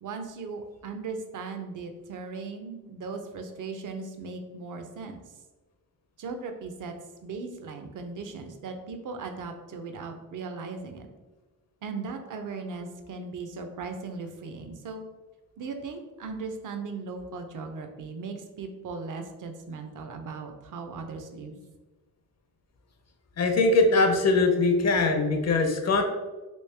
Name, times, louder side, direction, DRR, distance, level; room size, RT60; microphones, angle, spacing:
voice 1, 0.0-5.2 6.2-6.9 7.2-11.1 11.8-15.0 15.6-21.6, right 4 dB, 60° right, 6 dB, 0.6 m, -38 dB
voice 2, 23.4-26.0, left 3 dB, 50° left, 4 dB, 0.6 m, -22 dB
3.1 x 3.0 x 3.2 m, 1.2 s
cardioid pair, 90°, 35 cm